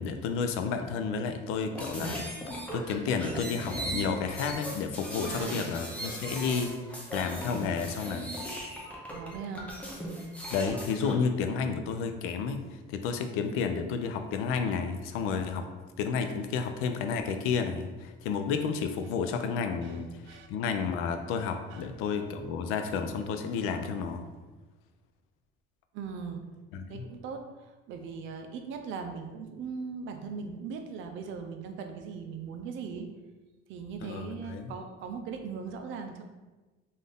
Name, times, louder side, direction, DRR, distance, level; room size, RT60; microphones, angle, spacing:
voice 1, 0.0-2.2 2.7-6.8 7.1-8.3 10.5-15.7 16.0-24.3 26.7-27.1 34.0-34.7, left 5 dB, 80° left, 7 dB, 0.5 m, -31 dB
sound 1, 1.7-11.1, equal, 5° left, 0.6 m, -38 dB
voice 2, 5.3-5.7 9.1-9.7 19.8-20.0 20.3-20.5 21.7-21.8 25.9-26.4 26.9-33.1 33.7-36.2, right 5 dB, 65° right, 5 dB, 0.5 m, -39 dB
3.9 x 2.6 x 3.4 m, 1.2 s
cardioid pair, 155°, 21 cm